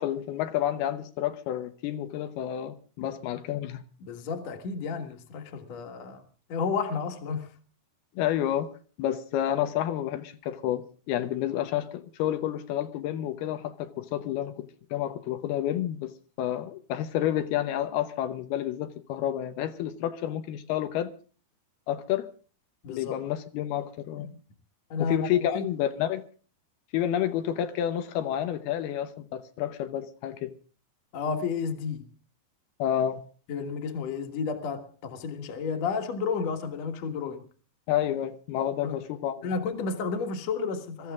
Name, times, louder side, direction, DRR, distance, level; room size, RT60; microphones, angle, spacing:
voice 1, 0.0-3.8 8.2-8.7 9.0-16.1 16.4-21.1 21.9-22.3 22.9-24.3 25.0-26.2 26.9-30.5 32.8-33.2 37.9-39.5, left 11 dB, 85° left, 2.9 m, -30 dB
voice 2, 4.0-6.2 6.5-7.5 22.8-23.2 24.2-24.3 24.9-25.2 25.5-25.6 31.1-32.1 33.5-37.4 38.8-39.0 39.4-41.1, left 5 dB, 50° left, 2.5 m, -32 dB
23.0 x 14.0 x 3.6 m
omnidirectional pair, 4.4 m